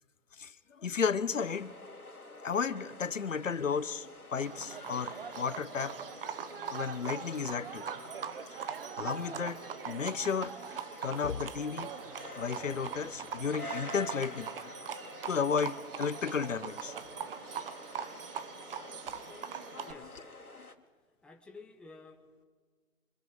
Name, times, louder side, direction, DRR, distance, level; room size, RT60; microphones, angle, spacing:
voice 1, 0.8-1.7 2.4-5.9 6.7-7.9 8.5-11.9 12.4-14.5 15.3-16.9 19.7-19.9, left 6 dB, 60° left, 16 dB, 1.2 m, -33 dB
sound 1, 1.3-20.8, left 1 dB, 85° left, 2.6 m, -48 dB
Livestock farm animals working animals, 4.4-19.9, right 7 dB, 40° right, 1.6 m, -42 dB
voice 2, 19.8-20.3 21.2-22.4, left 3 dB, ahead, 3 dB, 1.4 m, -52 dB
28.5 x 25.5 x 5.2 m, 1.5 s
figure-of-eight pair, 135°, 43 cm